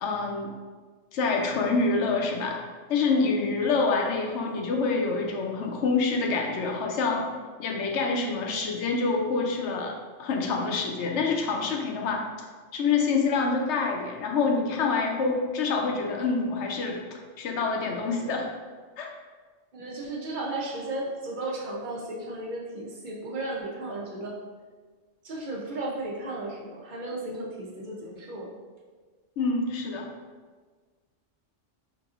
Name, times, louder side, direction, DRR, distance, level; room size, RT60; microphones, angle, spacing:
voice 1, 0.0-0.5 1.1-2.6 2.9-7.2 7.6-9.9 10.2-12.2 12.7-18.5 19.0-19.1 29.4-30.1, left 4 dB, 70° left, 1 dB, 0.8 m, -26 dB
voice 2, 19.7-24.4 25.2-28.5, right 2 dB, 55° right, -3 dB, 0.6 m, -34 dB
4.7 x 2.6 x 2.4 m, 1.5 s
omnidirectional pair, 1.3 m